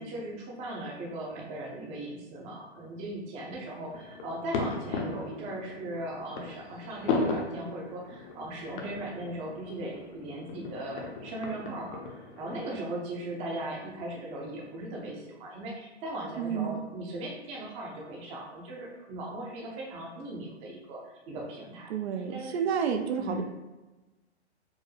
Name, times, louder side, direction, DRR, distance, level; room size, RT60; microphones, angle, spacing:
voice 1, 0.0-21.9 22.1-22.6 23.2-23.4, right 1 dB, 20° right, -2 dB, 0.6 m, -38 dB
sound 1, 3.9-12.6, left 3 dB, 50° left, 0.8 m, -36 dB
voice 2, 16.4-16.8 21.9-23.4, right 7 dB, 70° right, 6 dB, 0.5 m, -30 dB
4.5 x 2.1 x 3.2 m, 1.1 s
hypercardioid pair, 140°, 34 cm